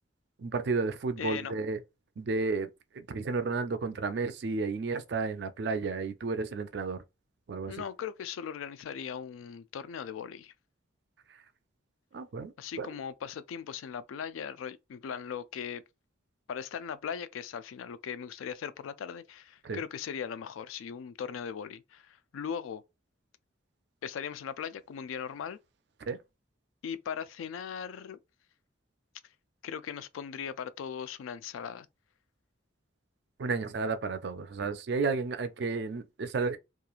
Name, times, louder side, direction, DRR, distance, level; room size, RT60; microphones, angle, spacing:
voice 1, 0.4-1.8 2.2-2.7 3.0-7.0 7.5-7.8 12.1-12.9 19.6-19.8 26.1-26.2 33.4-36.6, right 4 dB, 60° right, 0.4 m, -32 dB
voice 2, 1.2-1.5 7.7-10.5 12.6-15.8 16.5-22.8 24.0-25.6 26.8-28.2 29.6-31.9, left 7 dB, 90° left, 0.3 m, -39 dB
3.0 x 2.3 x 2.3 m
head